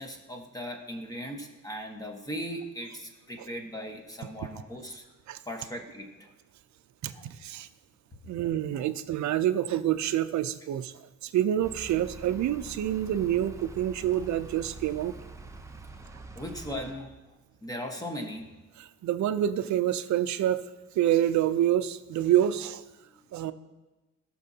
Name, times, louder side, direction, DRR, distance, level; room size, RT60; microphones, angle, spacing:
voice 1, 0.0-5.0 5.5-6.0 7.1-7.2 8.8-8.9 14.2-14.3 16.4-17.1 17.6-18.5, equal, 10° left, 3 dB, 1.3 m, -38 dB
voice 2, 7.0-7.7 8.3-10.9 11.2-15.1 18.8-20.6 20.9-22.8 23.3-23.5, right 11 dB, 70° right, 12 dB, 0.6 m, -27 dB
sound 1, 11.6-16.9, right 3 dB, 10° right, 0.7 m, -45 dB
17.5 x 6.2 x 2.8 m, 1.1 s
cardioid pair, 90°, 30 cm